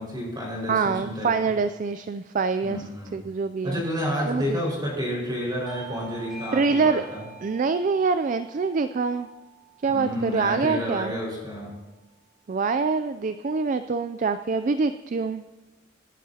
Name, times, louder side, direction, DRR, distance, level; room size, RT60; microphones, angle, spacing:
voice 1, 0.0-1.6 2.6-3.2 3.6-7.2 9.9-11.7, equal, 20° right, -3 dB, 5.1 m, -30 dB
voice 2, 0.7-2.8 3.1-3.8 4.3-4.6 6.5-7.0 7.4-9.3 9.8-11.1 12.5-15.4, right 4 dB, 40° right, 11 dB, 0.4 m, -25 dB
Bell / Doorbell, 5.7-10.7, right 4 dB, 5° right, 4.3 m, -46 dB
25.0 x 11.5 x 2.8 m, 1.2 s
head